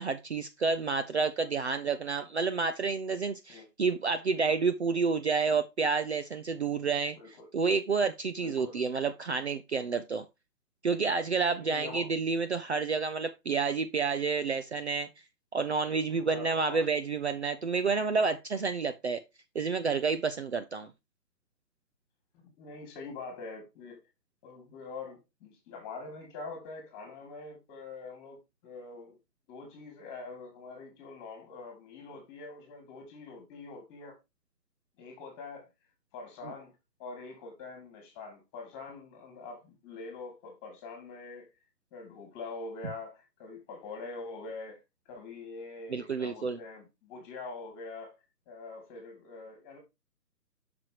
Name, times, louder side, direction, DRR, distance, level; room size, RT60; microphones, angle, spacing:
voice 1, 0.0-7.2 7.5-10.2 10.8-15.1 15.5-19.2 19.5-20.9 45.9-46.6, right 4 dB, 45° right, 0.7 m, -29 dB
voice 2, 7.2-7.5 8.4-8.8 11.6-12.1 16.1-16.9 22.4-24.0 24.4-29.2 29.5-34.2 35.0-35.7 36.1-36.7 37.0-41.5 41.9-48.2 48.5-49.8, left 3 dB, 15° left, 2.4 m, -44 dB
7.5 x 6.2 x 2.8 m
hypercardioid pair, 155°, 49 cm